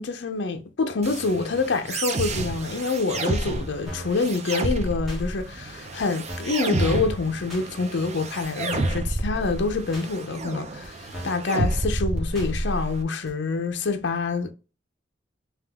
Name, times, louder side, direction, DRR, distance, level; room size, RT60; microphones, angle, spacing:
voice 1, 0.0-14.5, left 4 dB, 60° left, 0.5 m, -26 dB
sound 1, 1.0-13.0, right 2 dB, 35° right, 0.4 m, -30 dB
sound 2, 3.9-4.2 5.1-5.2 6.0-6.1 6.3-6.6 7.5-7.7 8.4-8.5 8.7-9.1 9.9-10.1 10.8-10.9 11.1-11.5 12.3-12.5 13.3-13.4, equal, ahead, 1.3 m, -39 dB
3.5 x 2.8 x 3.5 m
head